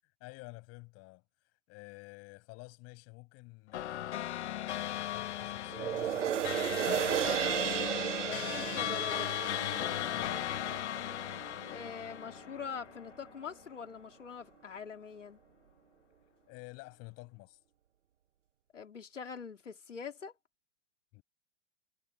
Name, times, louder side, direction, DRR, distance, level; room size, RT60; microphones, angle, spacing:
voice 1, 0.0-4.4 5.0-7.1 10.1-10.5 16.5-17.6 21.1-21.2, left 26 dB, 40° left, 7.7 m, -51 dB
sound 1, 3.7-13.4, left 13 dB, 65° left, 1.3 m, -37 dB
sound 2, 5.7-12.3 12.7-12.8, right 10 dB, 80° right, 1.0 m, -35 dB
voice 2, 8.2-9.4 11.7-15.4 18.7-20.3, left 6 dB, 90° left, 3.3 m, -44 dB
hypercardioid pair, 115°, 36 cm